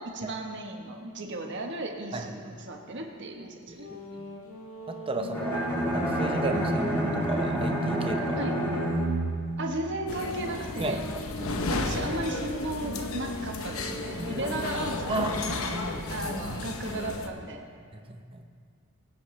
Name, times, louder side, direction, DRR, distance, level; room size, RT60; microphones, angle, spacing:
voice 1, 0.0-3.9 5.1-5.3 8.4-8.6 9.6-11.0 11.7-15.3 16.1-17.6, right 2 dB, 55° right, 2 dB, 1.3 m, -35 dB
sound 1, 3.7-9.2 9.8-15.2, left 1 dB, 85° left, 1.8 m, -40 dB
voice 2, 3.7-4.3 4.9-8.4 10.8-11.0 11.4-11.5 14.2-14.5 15.1-15.3 15.7-16.3 18.1-18.4, right 3 dB, 25° right, 5 dB, 0.8 m, -34 dB
Bowed string instrument, 5.3-10.4, right 1 dB, 15° left, 3.1 m, -29 dB
sound 2, 10.1-17.3, left 2 dB, 70° left, 0.9 m, -33 dB
21.5 x 8.7 x 3.3 m, 2.1 s
head